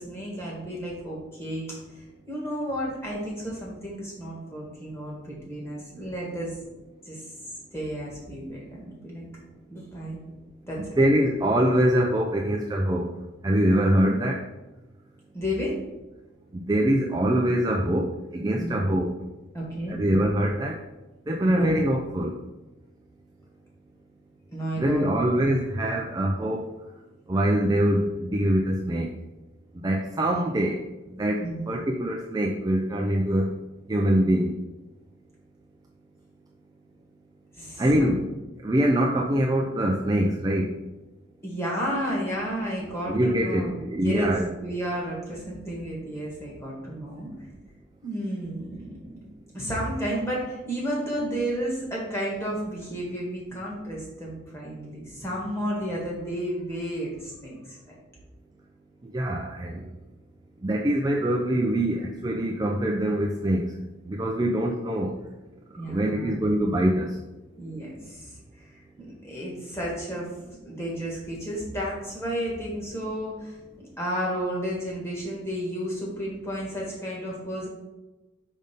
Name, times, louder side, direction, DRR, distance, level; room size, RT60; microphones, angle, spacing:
voice 1, 0.0-1.7 1.9-6.5 7.0-7.2 7.7-9.2 9.7-10.2 10.6-10.8 15.3-15.8 18.6-18.8 19.5-20.0 21.4-21.7 24.5-25.2 31.4-31.7 37.5-38.1 41.4-47.3 48.0-49.3 49.5-57.9 65.7-66.4 67.6-70.3 70.6-77.7, equal, 15° left, -5 dB, 1.7 m, -32 dB
voice 2, 11.0-13.2 13.4-14.4 16.5-19.2 19.9-20.8 21.3-22.4 24.8-26.8 27.3-29.1 29.8-30.8 31.1-33.5 33.9-34.6 37.8-38.3 38.6-40.8 43.1-44.5 59.0-59.9 60.6-63.7 64.1-65.2 65.8-67.2, right 1 dB, 20° right, 0 dB, 0.4 m, -24 dB
5.3 x 3.6 x 5.2 m, 1.1 s
head